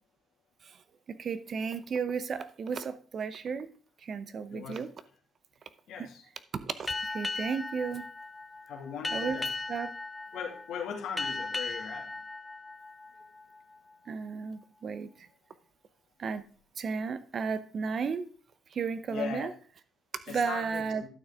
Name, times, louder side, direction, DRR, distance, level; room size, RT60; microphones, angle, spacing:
voice 1, 1.1-3.7 4.0-4.9 6.0-6.1 6.5-8.0 9.1-9.9 14.1-15.3 16.2-16.4 16.8-18.3 18.7-19.5 20.3-21.0, right 5 dB, 50° right, 13 dB, 0.7 m, -34 dB
voice 2, 4.5-4.8 5.9-6.2 8.7-9.5 10.3-12.1 19.1-19.5 20.3-21.1, left 7 dB, 80° left, 2 dB, 2.2 m, -39 dB
Boat Water vehicle, 6.9-13.9, left 3 dB, 20° left, 0.5 m, -37 dB
11.5 x 6.4 x 3.6 m, 0.42 s
cardioid pair, 90°, 0 cm